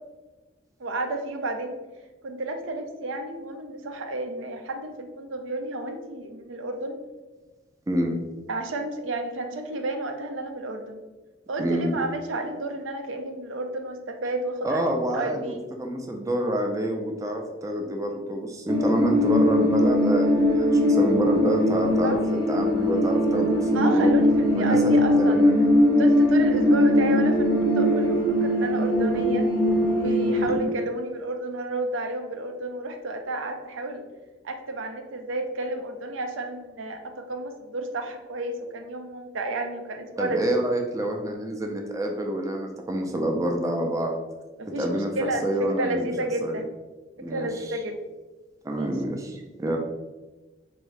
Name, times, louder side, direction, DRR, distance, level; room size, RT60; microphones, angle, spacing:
voice 1, 0.8-1.8 2.2-7.0 8.5-11.0 11.5-14.8 15.1-15.6 22.0-22.2 23.7-25.4 25.8-29.5 29.9-34.0 34.4-40.4 44.6-46.7 47.3-48.0 48.8-48.9, right 2 dB, 85° right, 5 dB, 0.5 m, -31 dB
voice 2, 7.9-8.2 11.6-12.0 14.6-24.1 24.5-25.5 30.5-30.6 40.2-44.2 44.8-45.1 45.4-46.1 46.4-46.6 47.2-47.8 48.6-49.8, right 1 dB, 15° right, 2 dB, 0.3 m, -27 dB
sound 1, 18.7-30.6, left 1 dB, 20° left, 0.6 m, -21 dB
3.7 x 2.6 x 3.2 m, 1.2 s
head